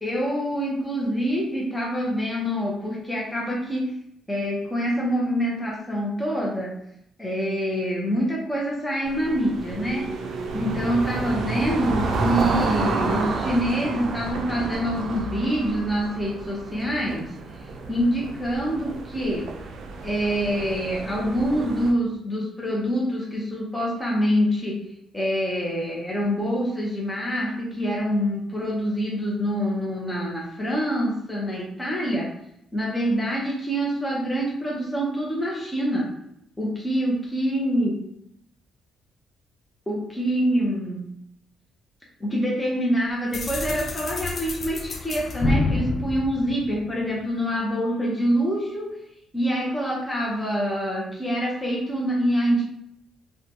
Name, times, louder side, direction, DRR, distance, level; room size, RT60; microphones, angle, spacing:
voice 1, 0.0-3.9 4.3-6.7 7.2-10.0 10.5-17.3 17.9-19.5 20.0-24.8 25.1-32.3 32.7-36.1 36.6-37.9 39.9-41.0 42.2-48.9 49.3-52.6, equal, 10° left, -4 dB, 0.7 m, -25 dB
sound 1, 9.1-21.9, right 3 dB, 70° right, 0.4 m, -30 dB
sound 2, 43.3-47.2, left 3 dB, 50° left, 0.4 m, -28 dB
2.7 x 2.2 x 2.8 m, 0.75 s
cardioid pair, 90°, 0 cm